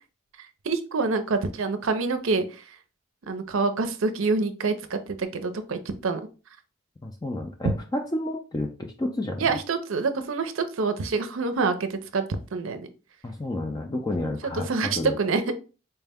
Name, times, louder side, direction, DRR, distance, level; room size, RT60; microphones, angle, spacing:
voice 1, 0.4-2.8 3.3-6.2 9.4-12.2 12.5-12.9 14.2-15.5, right 4 dB, 70° right, 9 dB, 0.5 m, -27 dB
voice 2, 7.0-9.5 13.2-14.7 15.0-15.2, left 1 dB, 20° left, 2 dB, 0.3 m, -30 dB
4.4 x 2.1 x 3.4 m, 0.33 s
head